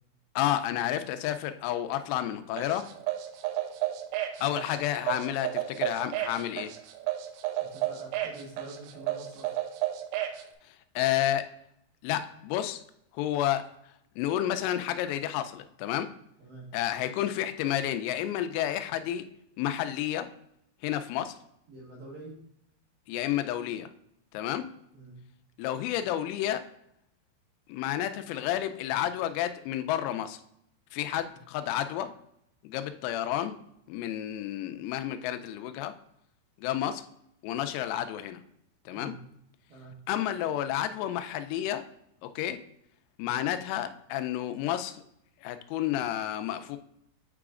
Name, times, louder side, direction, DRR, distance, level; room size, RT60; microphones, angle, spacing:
voice 1, 0.4-2.9 4.4-6.7 11.0-11.5 12.0-12.8 13.1-13.7 14.2-16.1 16.7-19.2 19.6-20.3 20.8-21.4 23.1-23.9 24.3-24.6 25.6-26.7 27.7-30.4 30.9-32.1 32.6-33.6 33.9-35.9 36.6-37.0 37.4-38.4 38.9-39.1 40.1-41.9 42.2-42.6 43.2-45.0 45.4-46.8, left 12 dB, 90° left, 9 dB, 3.3 m, -30 dB
sound 1, 2.6-10.4, right 14 dB, 85° right, 3.3 m, -32 dB
voice 2, 7.6-9.5 16.4-16.7 21.7-22.4 24.9-25.2 31.2-31.4 38.9-39.2 39.7-39.9, right 2 dB, 65° right, -4 dB, 2.5 m, -46 dB
9.2 x 4.9 x 2.4 m, 0.75 s
omnidirectional pair, 6.0 m